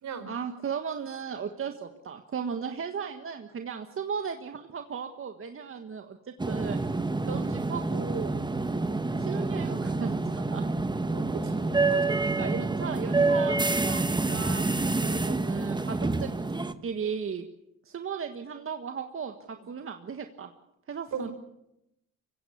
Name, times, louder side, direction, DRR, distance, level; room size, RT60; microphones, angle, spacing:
voice 1, 0.3-6.2 6.5-8.4 9.2-10.7 12.2-16.3 16.8-17.5 17.8-20.5 20.9-21.3, right 6 dB, 45° right, 6 dB, 1.6 m, -36 dB
sound 1, 6.4-16.7, right 3 dB, 15° right, 1.2 m, -27 dB
voice 2, 11.1-12.2 21.1-21.3, right 6 dB, 70° right, 9 dB, 4.5 m, -39 dB
24.0 x 16.5 x 8.6 m, 0.86 s
cardioid pair, 90°, 30 cm